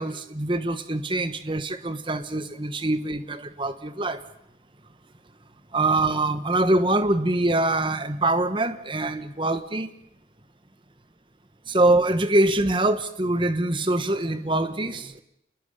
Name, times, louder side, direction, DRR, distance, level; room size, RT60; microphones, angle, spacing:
voice 1, 0.0-4.2 5.7-9.9 11.7-15.2, right 2 dB, 25° right, 1.2 m, -24 dB
28.5 x 21.0 x 6.7 m
head